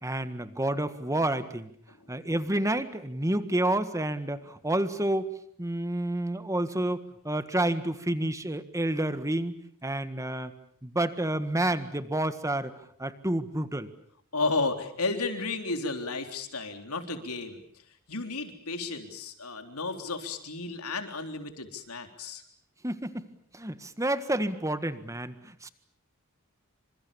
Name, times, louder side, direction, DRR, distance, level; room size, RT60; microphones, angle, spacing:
voice 1, 0.0-1.7 2.1-5.3 5.6-9.6 9.8-10.5 10.8-12.7 13.0-13.9 22.8-23.3 23.5-25.7, right 1 dB, 15° right, 11 dB, 1.7 m, -29 dB
voice 2, 14.3-17.6 18.1-22.4, left 3 dB, 90° left, 6 dB, 3.8 m, -33 dB
28.0 x 26.0 x 7.1 m, 0.62 s
head